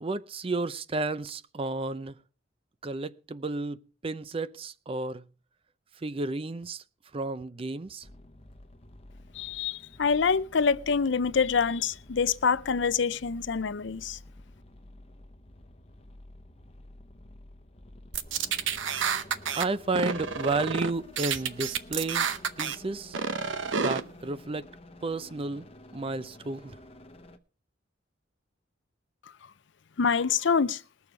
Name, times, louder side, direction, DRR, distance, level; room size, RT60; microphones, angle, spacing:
voice 1, 0.0-2.1 2.8-5.2 6.0-6.8 7.1-8.0 19.5-22.3 22.6-23.2 23.8-24.7 25.0-25.6 25.9-26.8, right 3 dB, 30° right, 0.5 m, -32 dB
sound 1, 8.0-27.4, left 1 dB, 30° left, 0.9 m, -51 dB
voice 2, 9.3-14.2 30.0-30.8, left 5 dB, 65° left, 0.6 m, -26 dB
sound 2, 18.1-19.6 19.9-20.9 21.2-22.7 23.1-24.0, right 6 dB, 70° right, 0.8 m, -29 dB
20.5 x 7.0 x 4.7 m
head